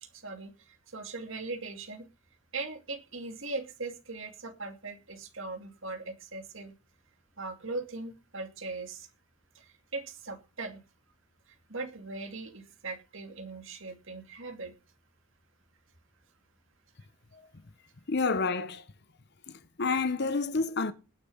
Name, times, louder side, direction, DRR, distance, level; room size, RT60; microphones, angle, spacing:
voice 1, 0.0-2.1 2.5-6.7 7.4-9.1 9.5-10.8 11.5-14.7, right 3 dB, 60° right, 2.6 m, -40 dB
voice 2, 18.1-18.8 19.8-20.9, left 4 dB, 50° left, 0.8 m, -28 dB
19.5 x 6.8 x 5.6 m
head